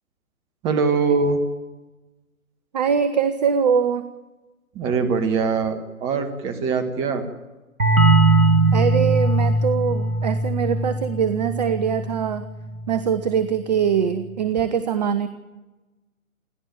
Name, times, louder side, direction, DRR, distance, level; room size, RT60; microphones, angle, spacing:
voice 1, 0.6-1.4 4.7-7.2, right 5 dB, 15° right, 8 dB, 1.6 m, -22 dB
voice 2, 2.7-4.0 8.7-12.5 12.9-15.3, right 7 dB, 30° right, 12 dB, 0.9 m, -22 dB
sound 1, 7.8-13.2, right 2 dB, 85° right, 1.7 m, -20 dB
28.5 x 11.0 x 8.9 m, 1.1 s
figure-of-eight pair, 135°, 41 cm